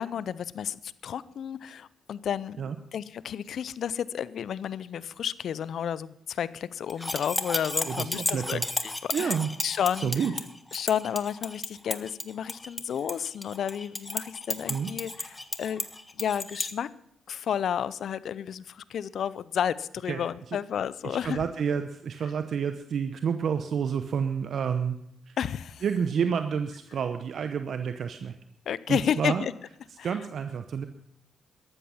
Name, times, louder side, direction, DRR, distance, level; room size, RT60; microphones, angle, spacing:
voice 1, 0.0-2.6 2.9-9.4 9.6-10.3 10.7-16.9 17.3-21.4 25.4-25.8 28.7-29.5 30.0-30.2, left 8 dB, 70° left, 18 dB, 0.5 m, -31 dB
sound 1, 6.9-16.7, left 2 dB, 20° left, 1.4 m, -33 dB
voice 2, 7.9-8.7 9.1-9.5 9.9-10.3 14.7-14.9 20.1-20.3 21.0-25.0 25.3-25.4 25.8-28.3 28.9-29.5 30.0-30.9, right 7 dB, 65° right, 9 dB, 0.8 m, -29 dB
13.5 x 12.5 x 5.6 m, 0.72 s
supercardioid pair, 50°, 0 cm